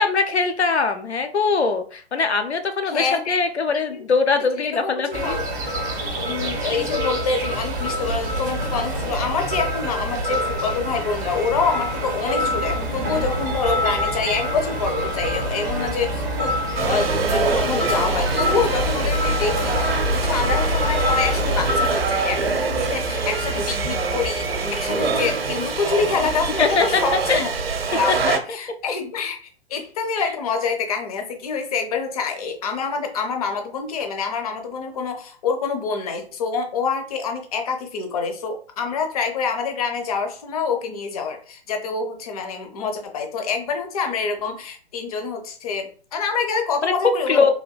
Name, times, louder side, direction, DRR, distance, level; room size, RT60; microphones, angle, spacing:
voice 1, 0.0-5.4 26.6-27.0 27.3-27.4 28.3-28.4 30.2-30.3 46.8-46.9 47.3-47.5, left 4 dB, 90° left, 7 dB, 0.5 m, -21 dB
voice 2, 2.8-3.4 3.7-4.0 4.6-5.4 6.2-27.5 27.9-29.4 29.7-47.5, left 5 dB, 35° left, 4 dB, 0.5 m, -26 dB
sound 1, 5.1-21.9, equal, 20° right, 0.4 m, -25 dB
sound 2, 16.8-28.4, right 4 dB, 65° right, 0.6 m, -25 dB
sound 3, 19.4-24.6, left 1 dB, 65° left, 1.0 m, -34 dB
3.4 x 2.5 x 2.2 m, 0.43 s
figure-of-eight pair, 120°, 32 cm